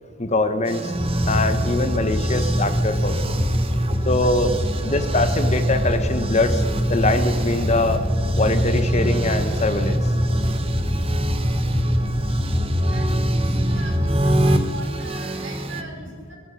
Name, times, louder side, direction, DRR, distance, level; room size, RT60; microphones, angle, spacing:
voice 1, 0.2-0.9 1.2-3.3 4.1-4.6 4.8-6.6 6.9-8.0 8.4-10.1, left 2 dB, 30° left, 9 dB, 0.9 m, -23 dB
sound 1, 0.6-15.8, right 1 dB, 25° right, 0.8 m, -29 dB
sound 2, 0.9-14.6, equal, 5° right, 2.7 m, -23 dB
voice 2, 12.9-16.4, right 2 dB, 55° right, 0 dB, 3.7 m, -39 dB
19.0 x 12.5 x 5.6 m, 2.1 s
head